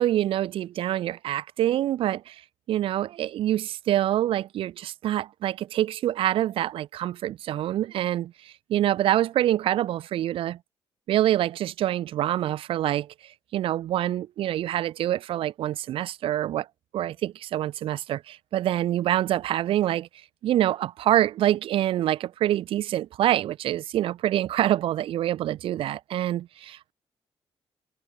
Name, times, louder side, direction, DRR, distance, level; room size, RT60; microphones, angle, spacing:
voice 1, 0.0-2.4 2.7-10.6 11.1-13.1 13.5-16.7 16.9-20.1 20.4-26.9, right 12 dB, 70° right, 0.5 m, -26 dB
cardioid pair, 150°, 9 cm